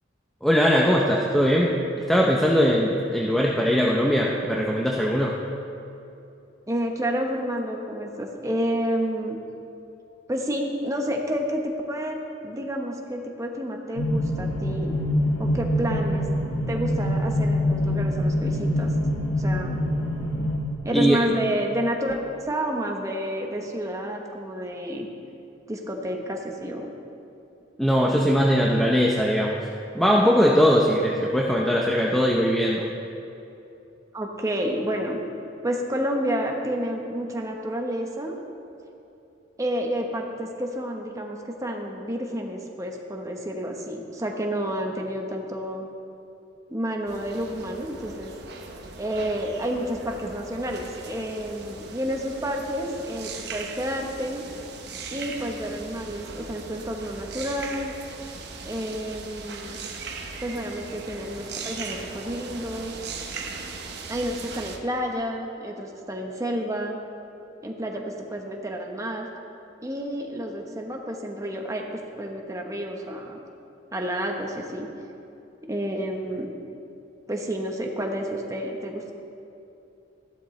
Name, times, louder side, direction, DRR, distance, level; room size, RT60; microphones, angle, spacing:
voice 1, 0.4-1.8 2.1-5.4 20.9-21.2 27.8-29.6 29.9-32.9, equal, ahead, -3 dB, 0.6 m, -20 dB
voice 2, 6.7-9.4 10.3-12.2 12.4-15.0 15.4-16.2 16.7-18.9 19.4-19.8 20.8-22.2 22.5-25.1 25.7-26.9 34.1-35.2 35.6-38.4 39.6-45.9 46.7-48.3 49.0-54.4 55.1-57.9 58.6-59.8 60.4-62.9 64.1-67.0 67.6-69.3 69.8-71.8 72.2-73.4 73.9-74.9 75.6-76.5 77.3-79.1, equal, 15° right, 1 dB, 1.0 m, -30 dB
sound 1, 14.0-20.6, left 1 dB, 75° left, 1.7 m, -25 dB
sound 2, 47.1-64.8, right 4 dB, 60° right, 0.9 m, -39 dB
14.0 x 12.0 x 3.2 m, 2.8 s
head